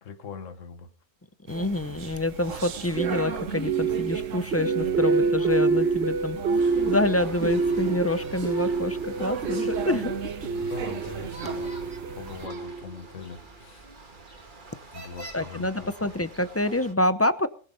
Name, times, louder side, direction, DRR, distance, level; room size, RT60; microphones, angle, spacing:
voice 1, 0.0-0.9 10.4-11.8 12.1-13.9 14.9-16.1, left 6 dB, 75° left, 1.5 m, -41 dB
voice 2, 1.5-10.2 15.3-17.5, left 1 dB, 15° left, 0.5 m, -27 dB
sound 1, 1.5-12.5, right 7 dB, 80° right, 1.4 m, -37 dB
sound 2, 3.0-13.1, right 4 dB, 55° right, 1.3 m, -27 dB
sound 3, 6.6-16.9, right 3 dB, 40° right, 1.7 m, -45 dB
21.5 x 7.4 x 5.2 m
omnidirectional pair, 1.3 m